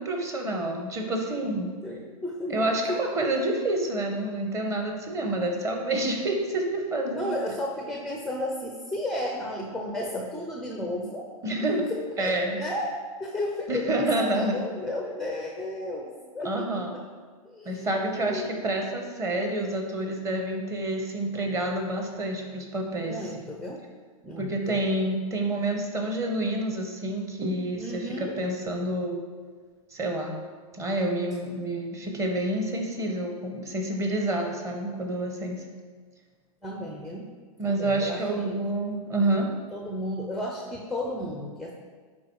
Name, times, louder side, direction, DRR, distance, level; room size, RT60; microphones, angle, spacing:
voice 1, 0.0-1.7 2.5-7.3 11.4-11.9 12.2-12.6 13.7-14.6 16.4-16.9 17.6-23.2 24.4-29.2 29.9-30.3 30.7-35.6 37.6-39.5, right 1 dB, 15° right, 3 dB, 0.9 m, -28 dB
voice 2, 1.6-3.1 7.2-11.3 11.9-17.0 17.4-18.5 23.0-23.8 24.2-24.8 27.7-28.4 36.6-37.3 37.6-38.6 39.7-41.7, left 1 dB, ahead, 0 dB, 0.5 m, -33 dB
9.5 x 3.9 x 4.6 m, 1.5 s
hypercardioid pair, 145°, 19 cm